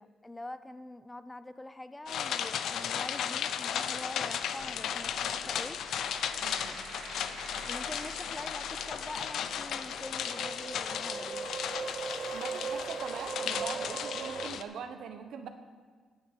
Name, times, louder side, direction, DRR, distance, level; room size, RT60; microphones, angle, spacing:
voice 1, 0.0-5.8 7.7-11.5, left 2 dB, 10° left, 12 dB, 0.5 m, -44 dB
sound 1, 2.1-14.6, left 8 dB, 75° left, 0.6 m, -35 dB
sound 2, 4.6-14.5, right 6 dB, 50° right, 0.5 m, -41 dB
voice 2, 6.4-6.9 12.3-15.5, right 6 dB, 75° right, 7 dB, 1.1 m, -42 dB
9.6 x 7.2 x 8.3 m, 1.5 s
cardioid pair, 120°, 0 cm